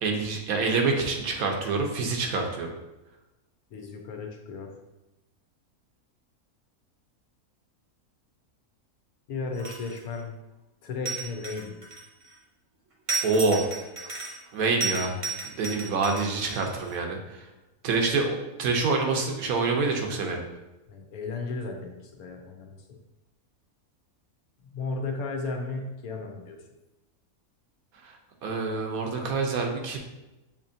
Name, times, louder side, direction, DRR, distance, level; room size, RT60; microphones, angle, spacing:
voice 1, 0.0-2.7 13.2-13.7 14.5-15.2 15.6-17.5 17.8-20.4 28.0-30.0, right 4 dB, 75° right, 2 dB, 1.2 m, -26 dB
voice 2, 3.7-4.7 9.3-10.3 10.8-11.8 20.9-23.0 24.6-26.6, left 3 dB, 80° left, 2 dB, 1.2 m, -35 dB
sound 1, 9.5-10.1 11.1-12.3 13.1-14.5 14.8-16.9, right 4 dB, 35° right, 0.8 m, -33 dB
6.7 x 2.9 x 2.6 m, 0.99 s
omnidirectional pair, 1.6 m